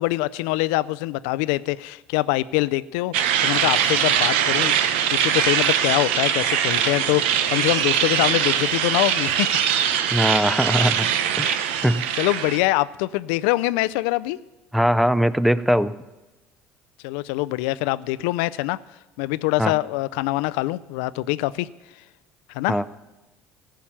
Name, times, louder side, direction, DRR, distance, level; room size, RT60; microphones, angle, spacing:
voice 1, 0.0-4.8 5.2-9.5 12.2-14.4 17.0-18.8 19.2-21.7 22.5-22.8, left 19 dB, 80° left, 17 dB, 0.4 m, -24 dB
sound 1, 3.1-12.6, right 9 dB, 85° right, 0.8 m, -22 dB
voice 2, 10.1-11.1 11.4-11.6 11.8-12.0 14.7-15.9 19.6-19.7 22.7-22.8, equal, ahead, 16 dB, 0.5 m, -20 dB
15.0 x 5.8 x 8.8 m, 1.1 s
supercardioid pair, 80°, 6 cm